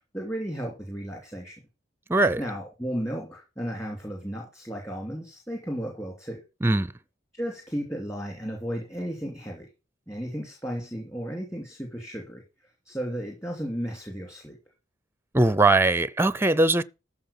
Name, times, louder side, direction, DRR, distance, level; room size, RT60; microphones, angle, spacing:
voice 1, 0.1-1.6 2.4-6.4 7.3-9.7 10.1-12.4 12.9-14.6, equal, 15° left, 2.7 m, -34 dB
voice 2, 2.1-2.4 6.6-6.9 15.3-16.8, right 2 dB, 15° right, 0.5 m, -20 dB
14.0 x 4.7 x 7.0 m
head